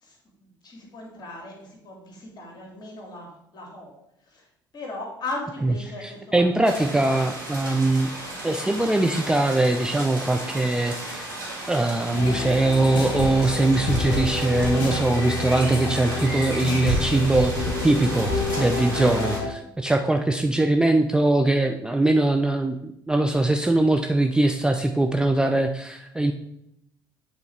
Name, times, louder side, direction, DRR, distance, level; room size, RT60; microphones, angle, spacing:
voice 1, 0.0-6.5 6.7-7.2 8.6-8.7 15.8-15.9, left 2 dB, 40° left, 0 dB, 2.0 m, -38 dB
voice 2, 6.0-8.1 8.4-11.3 11.7-17.5 17.8-18.3 18.6-26.3, right 2 dB, 5° right, 5 dB, 0.4 m, -22 dB
sound 1, 6.6-19.4, right 1 dB, 80° right, 1.9 m, -35 dB
sound 2, 12.1-19.5, left 2 dB, 60° left, 1.2 m, -28 dB
8.1 x 3.8 x 3.4 m, 0.77 s
figure-of-eight pair, 55°, 11 cm